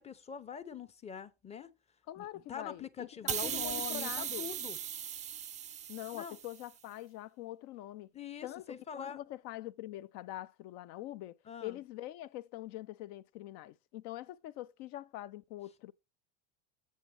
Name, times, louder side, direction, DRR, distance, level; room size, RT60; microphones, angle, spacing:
voice 1, 0.0-1.7 2.2-4.8 6.1-6.4 8.1-9.2 11.5-11.8, left 7 dB, 20° left, 0.7 m, -44 dB
voice 2, 2.1-4.5 5.9-8.1 8.4-15.9, left 14 dB, 55° left, 0.6 m, -44 dB
sound 1, 3.3-6.7, right 9 dB, 25° right, 0.5 m, -38 dB
8.3 x 7.4 x 3.3 m
supercardioid pair, 110°, 31 cm